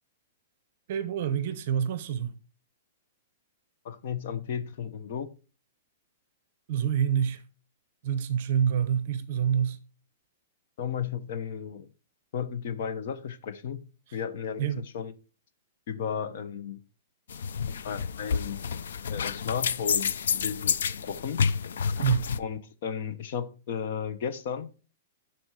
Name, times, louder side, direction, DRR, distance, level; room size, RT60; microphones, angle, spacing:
voice 1, 0.9-2.3 6.7-7.4 8.0-9.8 14.6-14.8 22.0-22.3, right 8 dB, 40° right, 0.9 m, -27 dB
voice 2, 3.8-5.3 10.8-11.9 12.3-13.8 14.1-15.1 15.9-16.8 17.8-18.6 19.1-21.4 22.4-24.7, left 7 dB, 45° left, 0.9 m, -34 dB
sound 1, 17.3-22.4, left 6 dB, 75° left, 0.5 m, -29 dB
12.0 x 4.4 x 4.7 m
hypercardioid pair, 175°, 0 cm